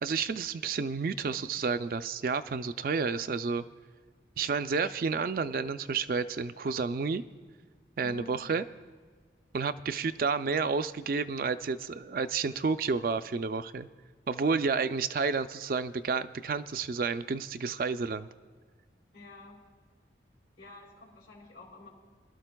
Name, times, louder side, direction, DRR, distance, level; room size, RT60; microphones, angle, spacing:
voice 1, 0.0-3.6 4.4-7.2 8.0-8.6 9.5-13.9 14.3-18.3, right 5 dB, 55° right, 11 dB, 0.4 m, -30 dB
voice 2, 8.0-8.5 19.1-19.6 20.6-21.9, left 2 dB, 75° left, -2 dB, 3.0 m, -50 dB
24.0 x 12.5 x 2.2 m, 1.5 s
head